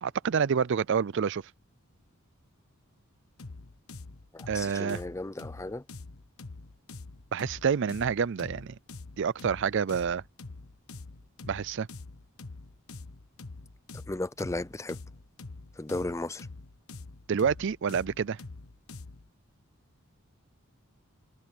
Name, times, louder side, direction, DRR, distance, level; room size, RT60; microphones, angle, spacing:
voice 1, 0.0-1.4 4.5-5.0 7.3-8.8 9.2-10.2 11.4-11.9 17.3-18.4, right 6 dB, 55° right, 0.4 m, -28 dB
sound 1, 3.4-19.3, left 3 dB, 85° left, 1.2 m, -45 dB
voice 2, 4.3-5.8 13.9-15.0 15.8-16.5, left 2 dB, 15° left, 0.5 m, -35 dB
head